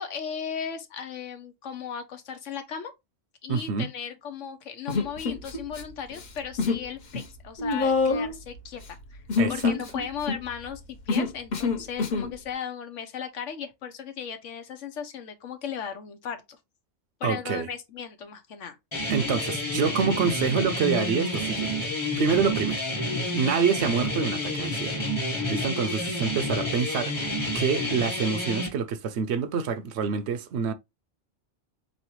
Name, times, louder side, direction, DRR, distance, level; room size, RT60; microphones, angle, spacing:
voice 1, 0.0-2.9 3.4-9.2 9.5-16.6 17.2-18.8, left 7 dB, 85° left, 1.2 m, -36 dB
voice 2, 3.5-3.9 9.4-9.7 17.2-17.7 19.1-21.7 22.2-22.9 23.3-25.0 25.5-30.7, right 6 dB, 70° right, 0.8 m, -27 dB
Human voice, 4.9-5.8 6.1-6.9 7.1-12.3, left 4 dB, 45° left, 0.8 m, -27 dB
sound 1, 18.9-28.7, left 1 dB, 25° left, 1.1 m, -29 dB
4.2 x 3.2 x 2.9 m
omnidirectional pair, 1.2 m